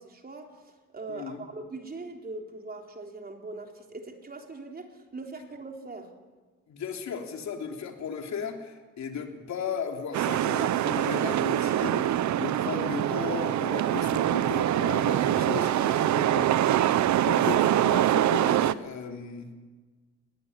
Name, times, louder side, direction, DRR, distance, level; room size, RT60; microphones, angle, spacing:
voice 1, 0.0-6.1, right 3 dB, 30° right, 3 dB, 3.7 m, -41 dB
voice 2, 1.1-1.4 6.7-19.5, left 6 dB, 65° left, 3 dB, 3.3 m, -36 dB
sound 1, 10.1-18.7, right 12 dB, 70° right, 0.9 m, -24 dB
21.0 x 18.0 x 9.9 m, 1.4 s
cardioid pair, 90°, 30 cm